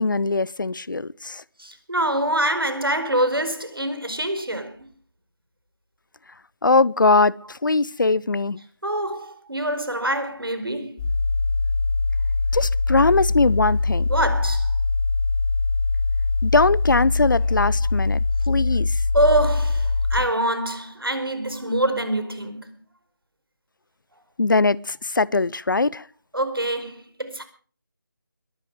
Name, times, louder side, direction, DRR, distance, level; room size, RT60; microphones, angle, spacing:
voice 1, 0.0-1.4 6.6-8.6 12.5-14.1 16.4-18.2 18.5-19.0 24.4-26.0, left 3 dB, 60° left, 0.7 m, -21 dB
voice 2, 1.6-4.8 8.8-11.0 14.1-14.7 19.1-22.7 26.3-27.4, right 1 dB, 85° right, 4.9 m, -25 dB
sound 1, 11.0-20.2, left 3 dB, 15° left, 2.5 m, -22 dB
22.0 x 11.0 x 4.9 m
figure-of-eight pair, 165°, 12 cm